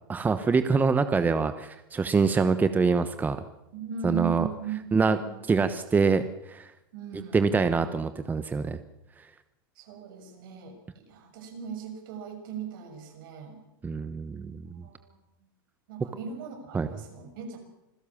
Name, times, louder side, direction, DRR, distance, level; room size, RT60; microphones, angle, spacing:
voice 1, 0.1-3.4 4.0-4.5 4.9-5.2 5.5-6.7 7.3-8.8 13.8-14.8 16.7-16.9, right 4 dB, 15° right, 11 dB, 1.1 m, -25 dB
voice 2, 3.7-5.4 6.9-7.9 9.7-13.6 14.8-15.2 15.9-17.6, right 6 dB, 70° right, 4 dB, 6.6 m, -38 dB
26.0 x 16.0 x 7.3 m, 0.89 s
supercardioid pair, 120°, 12 cm